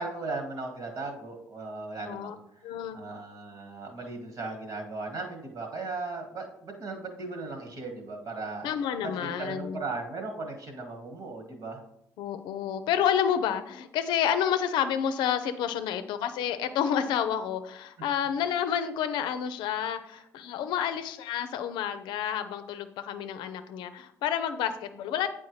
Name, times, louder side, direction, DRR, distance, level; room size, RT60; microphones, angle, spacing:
voice 1, 0.0-8.7 9.1-11.8, right 3 dB, 55° right, 2 dB, 1.8 m, -37 dB
voice 2, 2.6-3.0 8.6-9.8 12.2-25.3, left 9 dB, 80° left, 10 dB, 0.5 m, -29 dB
8.3 x 4.4 x 3.1 m, 0.75 s
supercardioid pair, 75°, 8 cm